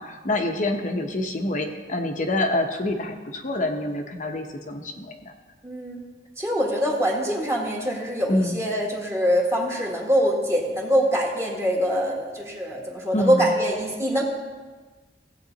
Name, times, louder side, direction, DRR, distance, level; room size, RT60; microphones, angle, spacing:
voice 1, 0.0-5.3 8.3-8.6 13.1-13.5, left 1 dB, 45° left, 4 dB, 0.9 m, -26 dB
voice 2, 5.6-6.0 6.4-14.2, equal, 15° right, -2 dB, 1.7 m, -24 dB
16.5 x 8.1 x 4.0 m, 1.4 s
head